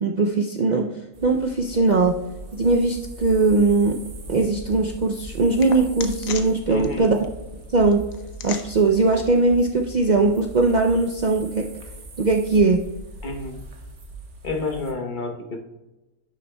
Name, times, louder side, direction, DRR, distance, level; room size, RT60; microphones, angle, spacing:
voice 1, 0.0-2.2 2.5-4.0 4.3-7.2 7.7-8.0 8.4-11.7 12.2-12.9, right 3 dB, 80° right, 2 dB, 0.4 m, -20 dB
sound 1, 1.1-14.9, right 1 dB, 50° right, 1.4 m, -40 dB
sound 2, 3.8-10.6, left 7 dB, 75° left, 1.2 m, -41 dB
voice 2, 6.7-7.1 13.2-13.6 14.4-15.6, left 3 dB, 40° left, 3 dB, 1.0 m, -29 dB
11.0 x 6.8 x 2.2 m, 1.0 s
omnidirectional pair, 1.5 m